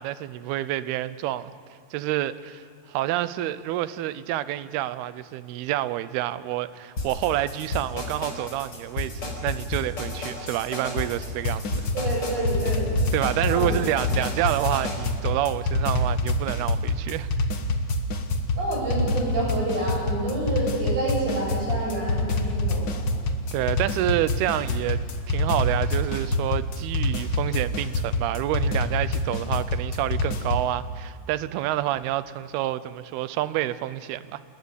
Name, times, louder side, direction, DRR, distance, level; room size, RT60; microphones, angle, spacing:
voice 1, 0.0-1.5 1.9-2.6 2.9-11.9 13.1-17.3 23.5-25.0 25.3-34.4, right 14 dB, 80° right, 2.7 m, -28 dB
sound 1, 7.0-15.0, left 2 dB, 25° left, 5.1 m, -32 dB
sound 2, 11.4-30.7, left 1 dB, 70° left, 1.0 m, -26 dB
voice 2, 11.9-12.9 13.4-13.7 18.6-23.0, right 1 dB, 50° right, 9.5 m, -28 dB
28.5 x 20.5 x 8.4 m
omnidirectional pair, 4.5 m